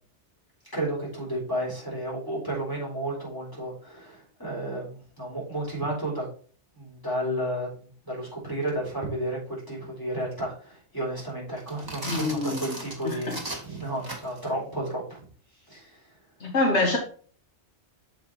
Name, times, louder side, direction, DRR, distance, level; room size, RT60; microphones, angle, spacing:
voice 1, 0.7-6.3 6.7-15.3 15.7-16.1, right 1 dB, 15° left, 3.8 m, -32 dB
sound 1, 11.6-14.5, right 2 dB, 20° right, 2.0 m, -37 dB
voice 2, 12.1-12.7 13.0-13.4 16.4-17.0, left 2 dB, 70° left, 1.5 m, -25 dB
7.1 x 4.8 x 4.4 m
omnidirectional pair, 1.2 m